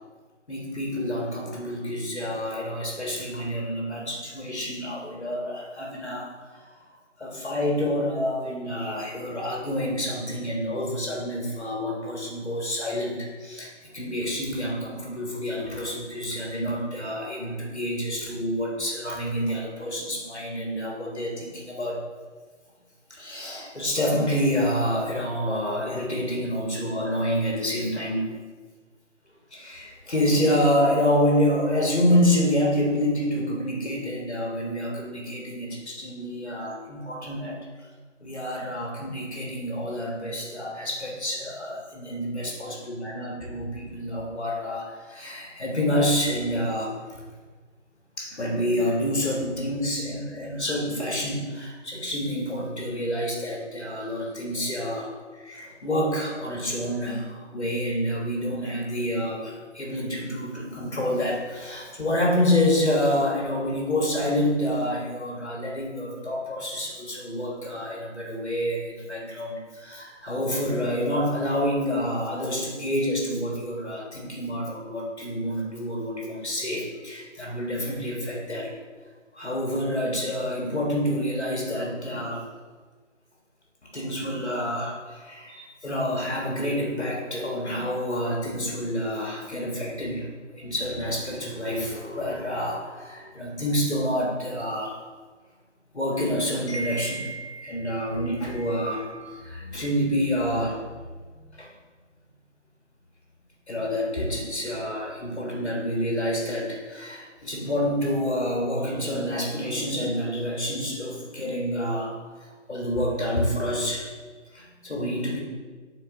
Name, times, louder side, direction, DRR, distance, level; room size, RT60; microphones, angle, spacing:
voice 1, 0.5-6.6 7.2-22.0 23.1-28.3 29.5-37.6 38.2-46.9 48.2-78.7 79.3-82.4 83.9-90.2 90.5-95.0 95.9-100.8 101.6-101.7 103.7-112.1 112.7-114.1 114.5-115.4, equal, 60° left, -2 dB, 1.5 m, -28 dB
7.4 x 4.2 x 3.8 m, 1.4 s
figure-of-eight pair, 180°, 37 cm